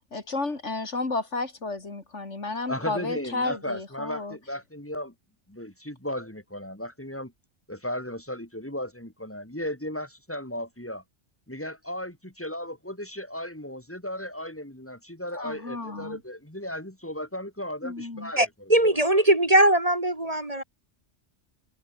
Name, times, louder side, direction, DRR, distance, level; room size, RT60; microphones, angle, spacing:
voice 1, 0.1-4.4 15.4-16.2 17.8-18.3, left 3 dB, 80° left, 3.6 m, -32 dB
voice 2, 2.7-5.1 5.5-7.3 7.7-11.0 11.5-18.4, left 1 dB, 10° left, 4.4 m, -35 dB
voice 3, 18.4-20.6, right 1 dB, 30° right, 2.4 m, -21 dB
omnidirectional pair, 1.2 m